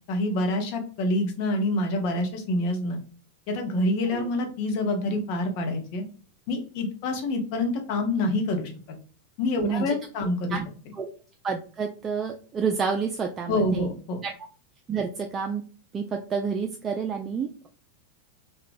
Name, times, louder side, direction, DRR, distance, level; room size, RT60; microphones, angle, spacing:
voice 1, 0.1-3.0 3.5-6.0 6.5-8.7 9.4-10.6 13.5-14.2, left 1 dB, 45° left, 3 dB, 0.7 m, -26 dB
voice 2, 10.2-10.7 11.0-11.1 11.4-13.9 14.2-14.3 14.9-15.6 15.9-17.7, right 5 dB, 25° right, 3 dB, 0.3 m, -29 dB
2.9 x 2.2 x 2.5 m, 0.39 s
figure-of-eight pair, 90°, 0 cm